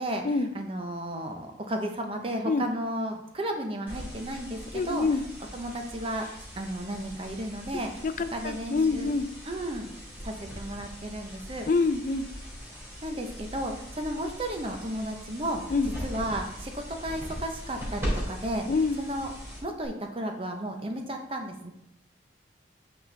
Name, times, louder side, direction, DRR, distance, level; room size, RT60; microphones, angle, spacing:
voice 1, 0.0-5.1 5.5-6.3 6.6-8.0 8.3-9.1 9.4-11.7 13.0-15.7 16.0-18.7 19.0-19.3 19.6-21.7, right 1 dB, 30° right, 4 dB, 0.8 m, -33 dB
sound 1, 3.9-19.9, equal, 15° right, 2.7 m, -40 dB
voice 2, 4.7-5.2 8.0-9.3 11.7-12.3 15.7-15.9 18.7-19.0, left 4 dB, 45° left, 10 dB, 0.4 m, -26 dB
8.2 x 4.4 x 3.4 m, 0.77 s
head